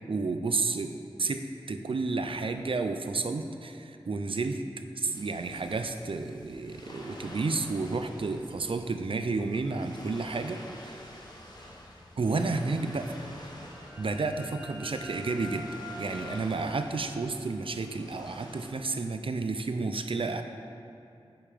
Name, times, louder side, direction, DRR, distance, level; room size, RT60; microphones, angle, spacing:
voice 1, 0.1-4.6 5.0-11.1 12.2-13.3 14.0-15.7 16.0-20.4, right 3 dB, 65° right, 7 dB, 0.6 m, -31 dB
sound 1, 5.0-18.7, left 1 dB, 45° left, 1.5 m, -48 dB
sound 2, 13.2-18.7, left 1 dB, 20° right, 2.0 m, -47 dB
10.0 x 5.6 x 5.1 m, 2.6 s
wide cardioid pair, 50°, 10 cm